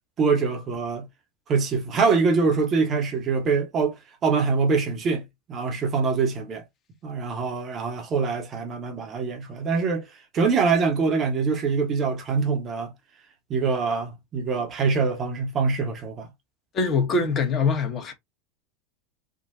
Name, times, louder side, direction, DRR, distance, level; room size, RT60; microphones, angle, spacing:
voice 1, 0.2-1.1 1.5-6.6 7.0-10.0 10.3-12.9 13.5-16.3, right 4 dB, 35° right, 1.1 m, -24 dB
voice 2, 16.7-18.1, left 4 dB, 35° left, 1.2 m, -23 dB
3.7 x 2.4 x 2.7 m
hypercardioid pair, 85°, 0 cm